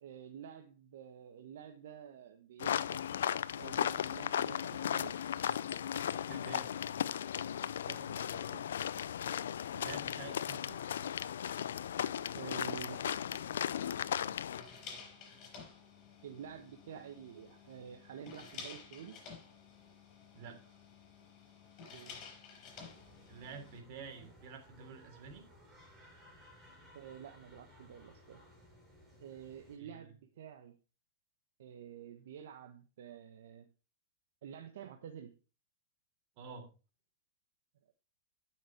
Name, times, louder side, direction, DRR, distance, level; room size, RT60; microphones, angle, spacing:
voice 1, 0.0-3.1 3.5-5.2 7.9-8.6 12.3-13.0 16.2-19.2 21.9-22.1 26.9-28.4 29.2-30.8 31.6-33.7 34.4-35.3, right 8 dB, 75° right, 6 dB, 1.2 m, -49 dB
sound 1, 2.6-14.6, left 9 dB, 80° left, 0.5 m, -36 dB
voice 2, 6.3-6.7 9.7-10.8 14.1-14.4 20.3-20.6 23.3-25.4 29.8-30.1 36.4-36.7, right 5 dB, 50° right, 5 dB, 3.3 m, -49 dB
sound 2, 12.3-23.8, left 6 dB, 40° left, 6.3 m, -53 dB
sound 3, 22.7-29.8, equal, 15° right, 5.8 m, -60 dB
11.5 x 6.4 x 4.5 m, 0.34 s
hypercardioid pair, 120°, 0 cm